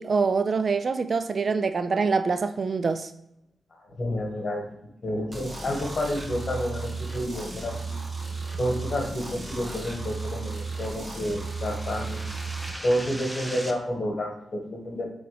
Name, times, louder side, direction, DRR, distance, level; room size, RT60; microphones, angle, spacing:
voice 1, 0.0-3.1, right 4 dB, 55° right, 0.3 m, -25 dB
voice 2, 3.7-4.6 5.0-8.0 8.6-12.4 12.8-15.1, equal, 50° left, 1.6 m, -30 dB
sound 1, 5.3-12.7, right 3 dB, 30° right, 1.6 m, -34 dB
sound 2, 9.4-13.7, equal, 10° right, 0.7 m, -42 dB
7.5 x 3.9 x 3.3 m
cardioid pair, 70°, 0 cm